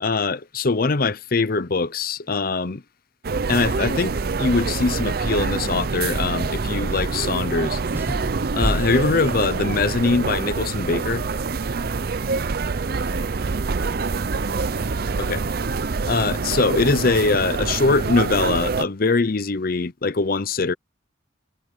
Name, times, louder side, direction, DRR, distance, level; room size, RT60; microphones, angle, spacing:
voice 1, 0.0-2.8 3.5-7.8 8.5-11.3 15.2-15.4 16.1-20.7, left 3 dB, 50° left, 0.7 m, -22 dB
sound 1, 3.2-18.9, right 4 dB, 50° right, 0.6 m, -26 dB
sound 2, 7.9-10.1, right 1 dB, 10° right, 0.6 m, -31 dB
voice 2, 12.9-15.4, right 2 dB, 75° right, 3.5 m, -38 dB
head